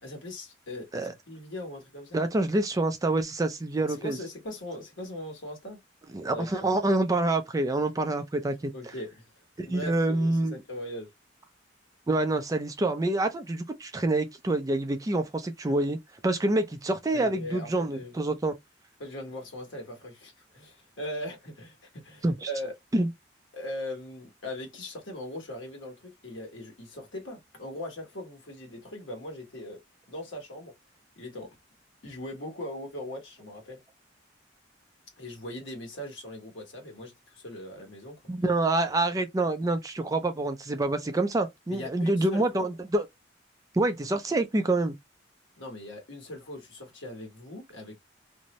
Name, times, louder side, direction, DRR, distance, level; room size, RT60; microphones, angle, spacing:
voice 1, 0.0-2.2 3.9-5.8 6.3-6.8 8.4-9.3 9.6-11.1 17.1-18.2 19.0-22.7 23.5-29.8 30.1-30.7 31.2-31.5 32.0-33.8 35.2-38.2 38.9-39.0 41.7-42.7 45.6-48.0, left 1 dB, 85° left, 1.2 m, -40 dB
voice 2, 2.1-4.2 6.1-8.7 9.6-10.6 12.1-16.0 16.2-18.5 22.2-22.3 22.9-23.1 38.3-43.0 43.7-44.9, right 2 dB, 20° right, 0.4 m, -27 dB
2.6 x 2.0 x 2.9 m
head